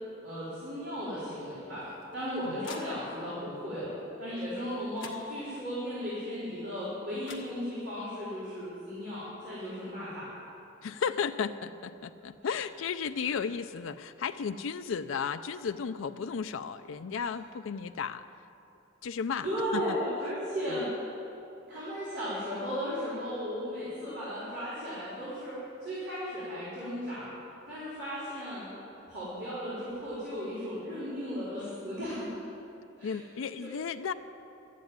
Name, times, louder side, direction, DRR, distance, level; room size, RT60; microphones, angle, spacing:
voice 1, 0.2-10.2 12.4-12.5 13.2-13.3 19.4-20.9 21.7-27.4 27.7-28.7 29.1-32.2 33.0-33.1 33.6-33.7, equal, 60° right, -11 dB, 4.4 m, -36 dB
sound 1, 1.8-3.4 4.6-4.7 5.0-5.8 6.9-7.0 7.2-8.1, left 5 dB, 75° left, 1.5 m, -49 dB
voice 2, 10.8-18.2 19.0-19.5 19.7-19.8 20.7-20.8 33.0-34.1, left 6 dB, 90° left, 9 dB, 0.4 m, -34 dB
13.0 x 9.5 x 9.3 m, 2.8 s
head